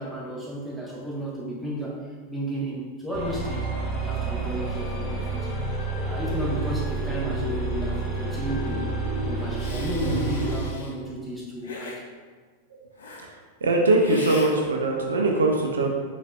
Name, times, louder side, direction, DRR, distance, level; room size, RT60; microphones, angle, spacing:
voice 1, 0.0-3.7 4.0-5.5 6.0-8.9 9.2-12.0, right 1 dB, ahead, -5 dB, 1.0 m, -33 dB
sound 1, 3.1-10.6, right 2 dB, 20° left, 1.2 m, -29 dB
Hiss, 9.6-10.9 11.6-12.0 13.0-13.3 14.0-14.5, left 3 dB, 65° left, 0.6 m, -40 dB
voice 2, 13.6-15.9, right 2 dB, 70° right, 1 dB, 0.4 m, -22 dB
4.0 x 4.0 x 2.3 m, 1.4 s
figure-of-eight pair, 90°, 0 cm